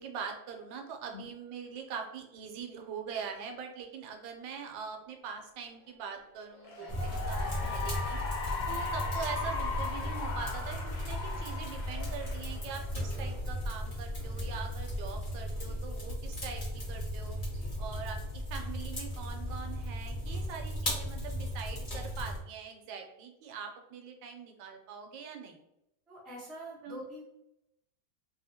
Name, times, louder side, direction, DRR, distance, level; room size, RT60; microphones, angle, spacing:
voice 1, 0.0-8.2 8.7-17.4 17.8-25.6 26.8-27.0, right 6 dB, 80° right, 3 dB, 1.3 m, -43 dB
Cheering / Applause, 6.5-13.2, left 4 dB, 85° left, 1.5 m, -38 dB
sound 1, 6.9-22.4, equal, 25° left, 0.9 m, -36 dB
voice 2, 17.5-18.0 26.1-27.2, equal, ahead, -6 dB, 0.4 m, -47 dB
3.2 x 2.8 x 2.7 m, 0.83 s
omnidirectional pair, 2.0 m